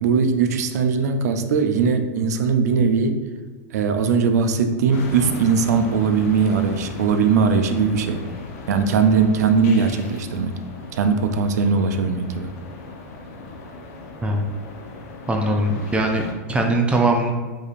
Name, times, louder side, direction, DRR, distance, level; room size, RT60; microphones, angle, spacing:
voice 1, 0.0-3.2 3.7-8.2 8.7-10.5 10.9-12.5, right 5 dB, 75° right, 7 dB, 0.4 m, -20 dB
sound 1, 4.9-16.3, left 3 dB, 65° left, 0.6 m, -37 dB
voice 2, 15.3-16.2 16.5-17.3, right 2 dB, 15° right, 2 dB, 0.4 m, -20 dB
4.8 x 2.7 x 2.5 m, 1.4 s
hypercardioid pair, 120°, 9 cm